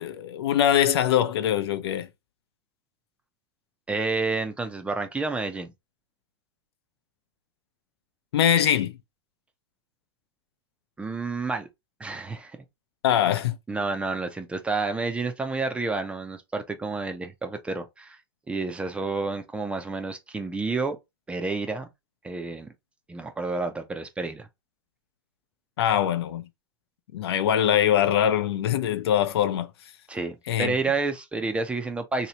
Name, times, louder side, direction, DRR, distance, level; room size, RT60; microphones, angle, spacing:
voice 1, 0.0-2.1 8.3-9.0 13.0-13.6 25.8-26.5 27.1-29.7 30.5-30.7, left 10 dB, 75° left, 0.7 m, -23 dB
voice 2, 3.9-5.7 11.0-11.7 12.0-12.6 13.7-18.2 18.5-21.0 21.3-21.9 22.2-22.7 23.1-24.5 30.1-32.3, right 3 dB, 10° right, 0.5 m, -30 dB
3.1 x 2.8 x 2.8 m
hypercardioid pair, 135°, 14 cm